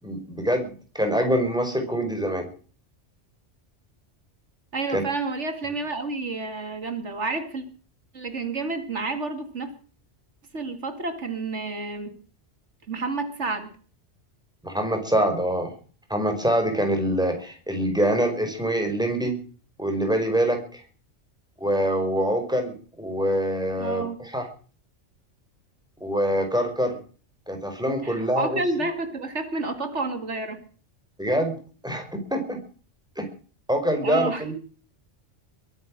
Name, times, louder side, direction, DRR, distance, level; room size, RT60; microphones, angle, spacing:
voice 1, 0.0-2.5 4.9-5.0 14.6-15.7 16.1-19.3 19.8-20.8 21.6-24.5 26.0-27.0 27.5-28.6 31.2-31.6 31.8-32.6 33.2-33.3 33.7-34.5, equal, 5° right, 4 dB, 4.9 m, -25 dB
voice 2, 4.7-7.6 8.1-9.7 10.5-12.1 12.9-13.7 23.8-24.2 28.0-30.6 34.0-34.4, right 3 dB, 75° right, 7 dB, 2.4 m, -30 dB
22.0 x 9.3 x 6.3 m, 0.41 s
omnidirectional pair, 1.2 m